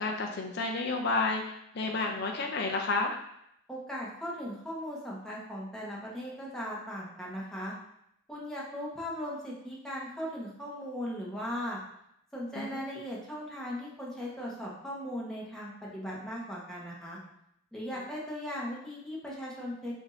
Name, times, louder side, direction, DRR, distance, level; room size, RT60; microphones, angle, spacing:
voice 1, 0.0-3.1 12.6-12.8, left 3 dB, 55° left, 2 dB, 0.5 m, -31 dB
voice 2, 3.7-7.7 8.3-11.8 12.3-17.2 17.7-19.9, equal, 5° left, -5 dB, 1.0 m, -38 dB
6.1 x 2.7 x 3.1 m, 0.76 s
head